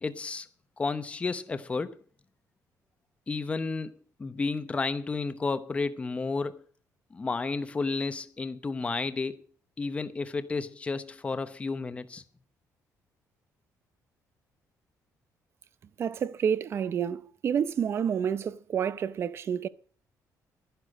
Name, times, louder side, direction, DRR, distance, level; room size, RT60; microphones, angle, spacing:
voice 1, 0.0-0.5 0.8-2.0 3.3-6.6 7.1-9.4 9.8-12.2, left 4 dB, 20° left, 0.9 m, -32 dB
voice 2, 16.0-19.7, right 8 dB, 40° right, 0.6 m, -29 dB
12.0 x 11.5 x 5.1 m
cardioid pair, 160°, 6 cm